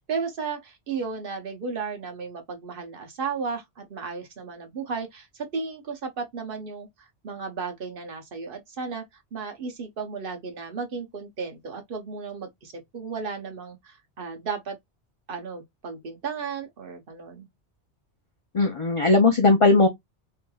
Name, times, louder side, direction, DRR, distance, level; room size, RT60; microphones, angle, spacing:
voice 1, 0.1-6.9 7.2-9.0 9.3-14.8 15.3-17.5, right 5 dB, 55° right, 0.9 m, -34 dB
voice 2, 18.5-19.9, left 3 dB, 50° left, 0.3 m, -18 dB
3.1 x 2.7 x 2.2 m
omnidirectional pair, 1.2 m